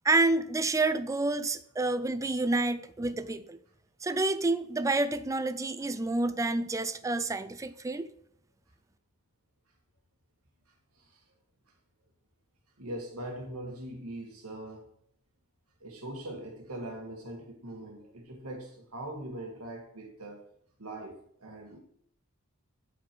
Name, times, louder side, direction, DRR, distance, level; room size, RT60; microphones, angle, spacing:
voice 1, 0.0-3.6 4.0-8.1, right 2 dB, 15° right, 12 dB, 0.4 m, -28 dB
voice 2, 12.8-14.9 15.8-20.4 20.8-21.8, right 1 dB, 85° right, 2 dB, 1.9 m, -41 dB
9.3 x 4.3 x 4.5 m, 0.67 s
head